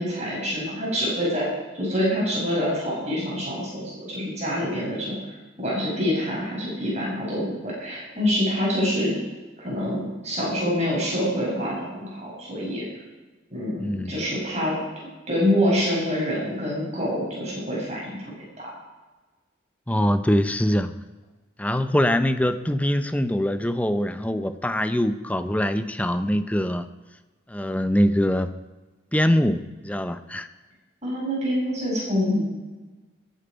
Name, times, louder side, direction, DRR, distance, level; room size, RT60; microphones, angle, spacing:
voice 1, 0.0-1.5 1.7-5.2 5.6-9.1 9.6-12.9 13.5-14.8 15.3-18.7 31.0-32.4, equal, 35° right, -5 dB, 6.0 m, -26 dB
voice 2, 13.8-14.1 19.9-20.9 21.6-26.9 27.5-28.5 29.1-30.5, equal, 5° left, 10 dB, 0.6 m, -23 dB
20.5 x 8.4 x 5.0 m, 1.2 s
head